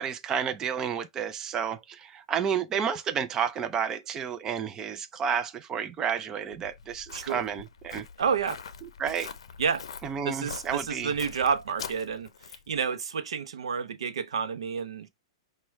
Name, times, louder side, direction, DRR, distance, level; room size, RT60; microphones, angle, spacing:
voice 1, 0.0-8.1 8.8-9.3 10.0-11.1, right 7 dB, 20° right, 0.4 m, -31 dB
Walk footsteps, 6.5-12.8, left 6 dB, 80° left, 0.6 m, -44 dB
voice 2, 8.2-8.6 9.6-9.8 10.2-12.3 12.7-15.1, right 6 dB, 85° right, 0.6 m, -29 dB
6.0 x 2.2 x 3.1 m
hypercardioid pair, 135°, 3 cm